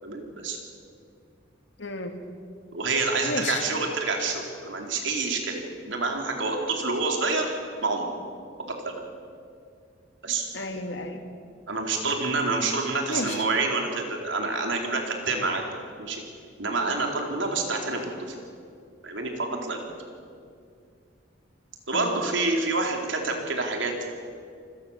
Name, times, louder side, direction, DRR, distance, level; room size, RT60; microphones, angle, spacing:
voice 1, 0.0-0.6 2.7-7.5 7.8-8.1 8.6-8.9 10.2-10.5 11.7-15.6 16.0-16.2 16.6-18.3 19.0-19.8 21.9-24.1, right 3 dB, 80° right, 2 dB, 4.4 m, -27 dB
voice 2, 1.8-2.2 3.2-3.6 10.5-11.2 13.1-13.4 21.9-22.2, left 2 dB, 70° left, 6 dB, 2.5 m, -32 dB
28.0 x 21.0 x 7.5 m, 2.3 s
head